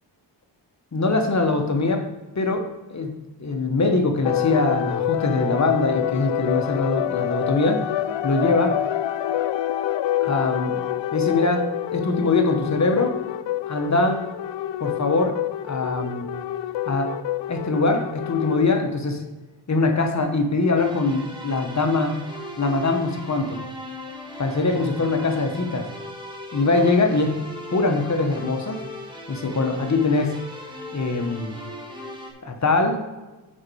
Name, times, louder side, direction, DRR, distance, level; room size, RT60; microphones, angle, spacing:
voice 1, 0.9-2.1 2.3-7.9 8.2-8.8 10.2-10.8 11.1-13.2 13.7-14.2 14.8-16.3 16.9-17.1 17.5-19.2 19.7-22.2 22.6-23.6 24.4-25.9 26.5-27.4 27.7-28.8 29.3-30.4 30.9-31.5 32.4-33.0, left 3 dB, 40° left, 5 dB, 1.2 m, -22 dB
sound 1, 4.2-18.6, left 12 dB, 80° left, 0.6 m, -27 dB
sound 2, 20.7-32.3, left 1 dB, 10° right, 1.7 m, -38 dB
6.1 x 5.2 x 6.3 m, 1.1 s
cardioid pair, 70°, 43 cm